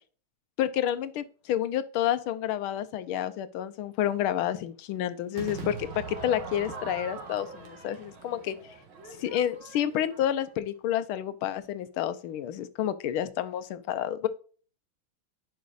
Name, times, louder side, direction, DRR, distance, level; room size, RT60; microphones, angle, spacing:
voice 1, 0.6-8.5 9.2-14.3, left 11 dB, 80° left, 12 dB, 1.5 m, -29 dB
Crowd / Fireworks, 5.3-10.6, right 4 dB, 70° right, 2.3 m, -42 dB
10.5 x 5.1 x 2.5 m, 0.40 s
omnidirectional pair, 2.3 m